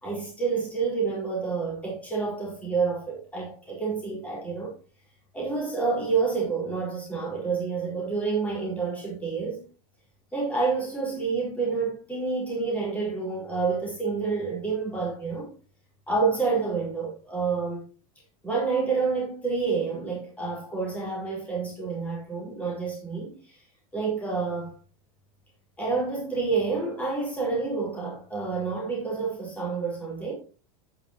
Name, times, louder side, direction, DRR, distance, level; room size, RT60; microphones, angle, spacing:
voice 1, 0.0-4.7 5.3-9.7 10.3-15.5 16.1-17.9 18.4-23.6 23.9-24.7 25.8-30.3, right 4 dB, 10° left, 4.8 m, -28 dB
10.5 x 9.6 x 3.0 m
supercardioid pair, 155°, 18 cm